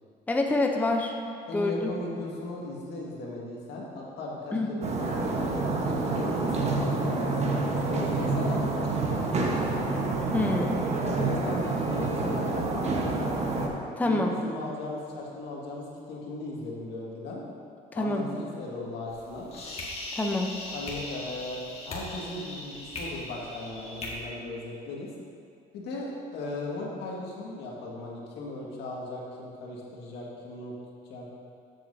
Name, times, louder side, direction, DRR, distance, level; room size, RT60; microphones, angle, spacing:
voice 1, 0.3-1.1 1.5-1.9 4.5-4.7 10.3-10.7 14.0-14.3 17.9-18.2 20.1-20.5, left 2 dB, 10° left, 1 dB, 0.7 m, -26 dB
voice 2, 1.5-5.5 5.8-9.9 11.1-13.3 14.0-17.4 17.9-19.5 20.7-25.1 25.7-30.7 31.1-31.3, left 2 dB, 80° left, -4 dB, 1.9 m, -37 dB
sound 1, 4.8-13.7, right 3 dB, 40° right, 1.2 m, -28 dB
sound 2, 19.1-24.1, left 2 dB, 35° left, 1.9 m, -39 dB
12.5 x 7.7 x 2.8 m, 2.4 s
cardioid pair, 110°, 17 cm